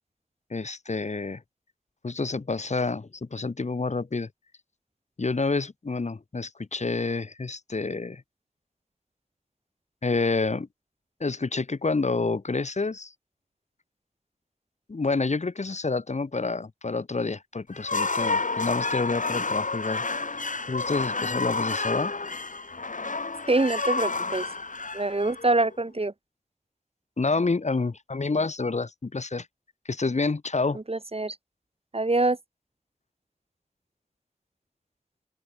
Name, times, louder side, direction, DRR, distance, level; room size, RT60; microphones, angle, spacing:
voice 1, 0.5-1.4 2.0-4.3 5.2-8.2 10.0-10.7 11.2-13.1 14.9-20.0 20.7-22.1 27.2-29.5 29.9-30.8, left 3 dB, 60° left, 0.7 m, -28 dB
sound 1, 17.7-25.8, left 3 dB, 85° left, 1.3 m, -30 dB
voice 2, 23.5-24.5 24.9-26.1 30.7-31.4 31.9-32.4, right 2 dB, 50° right, 1.3 m, -25 dB
open air
wide cardioid pair, 45°, 13 cm